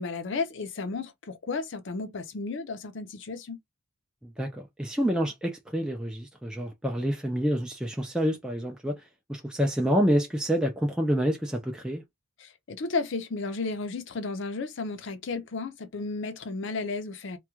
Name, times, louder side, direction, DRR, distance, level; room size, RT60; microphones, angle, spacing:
voice 1, 0.0-3.6 12.4-17.4, left 3 dB, 60° left, 0.5 m, -33 dB
voice 2, 4.2-9.0 9.3-12.0, equal, 5° right, 0.4 m, -28 dB
2.3 x 2.2 x 2.9 m
head